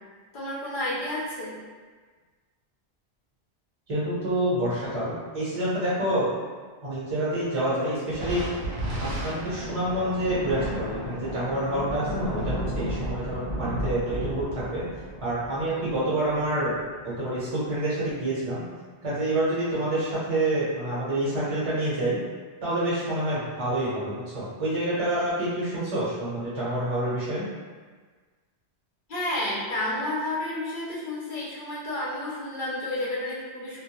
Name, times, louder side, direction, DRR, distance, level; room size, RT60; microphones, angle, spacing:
voice 1, 0.3-1.5 29.1-33.8, left 1 dB, 55° left, -6 dB, 0.7 m, -31 dB
voice 2, 3.9-6.3 6.8-8.5 9.0-16.7 17.0-18.6 19.0-22.2 22.6-27.5, right 1 dB, 35° right, -10 dB, 0.8 m, -27 dB
Thunder, 8.1-16.9, right 1 dB, 65° right, 0.8 m, -33 dB
2.2 x 2.1 x 2.8 m, 1.5 s
omnidirectional pair, 1.1 m